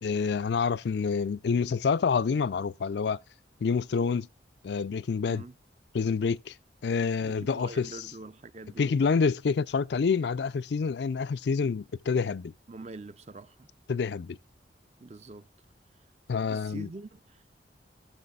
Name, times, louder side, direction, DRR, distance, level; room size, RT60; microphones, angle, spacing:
voice 1, 0.0-3.2 3.6-4.3 4.6-5.4 5.9-6.5 6.8-8.0 8.8-12.5 13.9-14.4 16.3-16.9, left 5 dB, 65° left, 0.4 m, -27 dB
voice 2, 7.2-8.9 12.7-13.7 15.0-15.5 16.5-17.5, right 3 dB, 35° right, 0.5 m, -44 dB
13.5 x 7.5 x 2.3 m
head